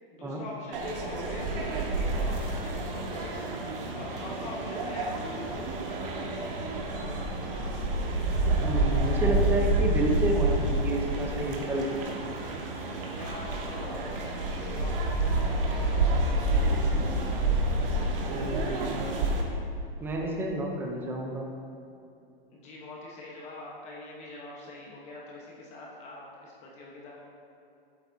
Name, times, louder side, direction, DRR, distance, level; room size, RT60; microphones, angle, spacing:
voice 1, 0.1-1.5 1.9-3.5 4.0-5.5 13.1-16.8 22.5-27.2, left 2 dB, 20° left, -4 dB, 1.1 m, -44 dB
sound 1, 0.7-19.4, right 2 dB, 65° right, 1.8 m, -29 dB
voice 2, 8.6-11.9 18.3-19.3 20.0-21.5, right 1 dB, 5° right, 0 dB, 0.6 m, -30 dB
12.5 x 8.2 x 2.7 m, 2.6 s
hypercardioid pair, 160°, 29 cm